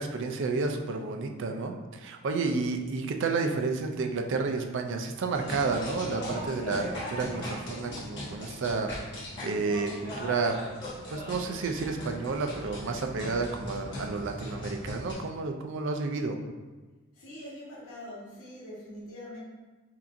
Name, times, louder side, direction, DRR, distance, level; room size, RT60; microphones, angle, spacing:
voice 1, 0.0-8.9 9.4-10.6 11.1-16.4, right 4 dB, 55° right, 4 dB, 0.4 m, -31 dB
sound 1, 5.3-15.1, left 1 dB, 55° left, 1.4 m, -39 dB
voice 2, 17.1-19.4, left 1 dB, 85° left, -7 dB, 1.4 m, -43 dB
5.6 x 2.6 x 2.6 m, 1.3 s
head